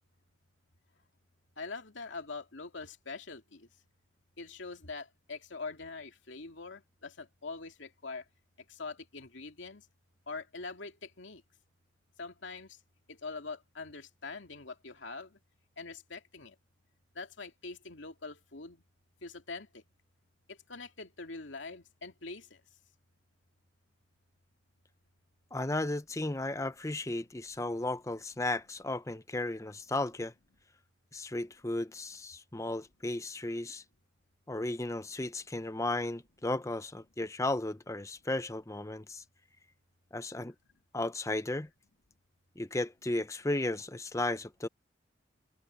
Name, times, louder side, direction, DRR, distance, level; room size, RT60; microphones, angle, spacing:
voice 1, 1.6-3.7 4.4-8.2 8.7-9.9 10.3-11.4 12.2-12.8 13.1-15.4 15.8-16.6 17.1-18.8 19.2-19.8 20.5-22.6, left 3 dB, 75° left, 2.4 m, -44 dB
voice 2, 25.5-30.3 31.1-33.8 34.5-39.2 40.1-40.5 40.9-41.7 42.6-44.7, left 2 dB, 15° left, 0.7 m, -34 dB
head